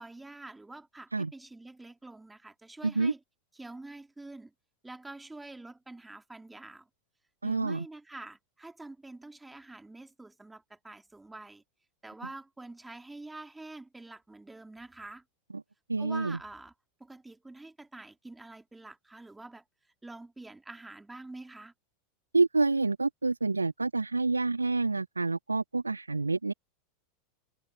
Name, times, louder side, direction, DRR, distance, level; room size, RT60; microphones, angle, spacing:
voice 1, 0.0-3.2 3.5-4.5 4.8-6.9 7.4-11.6 12.0-15.2 16.0-16.7 17.0-19.6 20.0-21.7, right 2 dB, 10° right, 2.6 m, -46 dB
voice 2, 7.4-7.8 15.9-16.4 22.3-26.5, right 3 dB, 85° right, 0.5 m, -28 dB
figure-of-eight pair, 85°, 0 cm